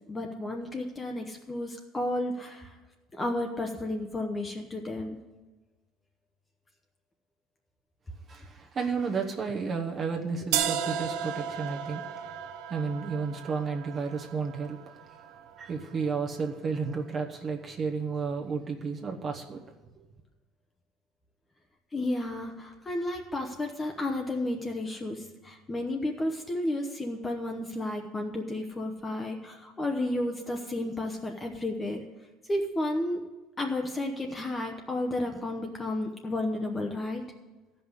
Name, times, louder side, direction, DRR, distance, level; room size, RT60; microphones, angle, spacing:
voice 1, 0.1-2.7 3.2-5.2 21.9-32.0 32.5-33.2 33.6-37.2, left 1 dB, 15° left, 3 dB, 0.9 m, -32 dB
voice 2, 8.3-12.0 12.7-14.8 15.6-19.6 20.0-20.1, right 5 dB, 30° right, 2 dB, 1.0 m, -32 dB
sound 1, 10.5-16.5, right 9 dB, 85° right, 0.8 m, -35 dB
14.0 x 5.5 x 8.1 m, 1.2 s
cardioid pair, 140°, 0 cm